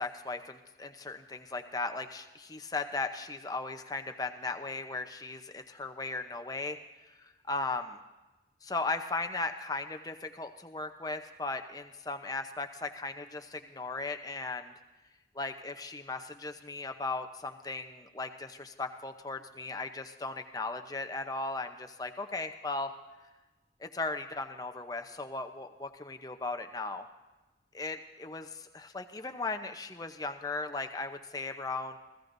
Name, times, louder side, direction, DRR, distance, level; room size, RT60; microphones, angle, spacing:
voice 1, 0.0-6.8 7.2-8.0 8.6-14.7 15.3-22.9 23.8-27.1 27.7-32.0, left 3 dB, 20° left, 6 dB, 0.7 m, -37 dB
29.5 x 15.5 x 2.7 m, 1.1 s
head